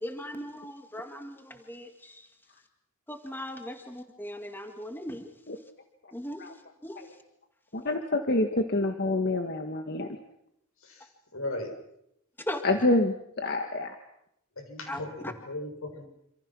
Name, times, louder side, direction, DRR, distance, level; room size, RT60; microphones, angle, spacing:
voice 1, 0.0-2.3 3.1-5.3 6.1-6.5 6.8-7.2 12.4-12.6 14.9-15.3, left 1 dB, 10° left, 5 dB, 2.0 m, -38 dB
voice 2, 7.7-10.1 12.6-13.9 15.0-15.1, left 2 dB, 50° left, 5 dB, 1.7 m, -27 dB
voice 3, 10.8-11.7 12.7-12.8 14.6-16.0, left 1 dB, 85° left, 5 dB, 7.3 m, -38 dB
27.5 x 27.0 x 6.2 m, 0.78 s
head